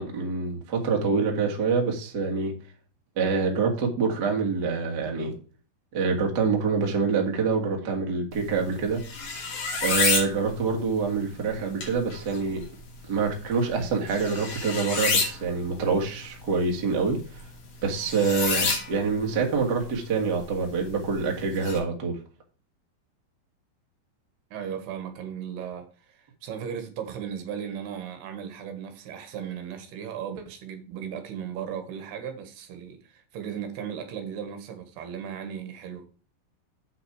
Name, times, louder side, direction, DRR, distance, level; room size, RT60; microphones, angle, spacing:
voice 1, 0.0-2.5 3.2-5.3 5.9-9.0 9.8-12.6 13.1-17.4 17.8-22.2, right 4 dB, 50° right, 1.2 m, -26 dB
sound 1, 8.3-21.8, left 4 dB, 50° left, 3.5 m, -32 dB
voice 2, 24.5-36.1, right 8 dB, 75° right, 3.1 m, -36 dB
8.3 x 5.8 x 4.8 m
omnidirectional pair, 5.0 m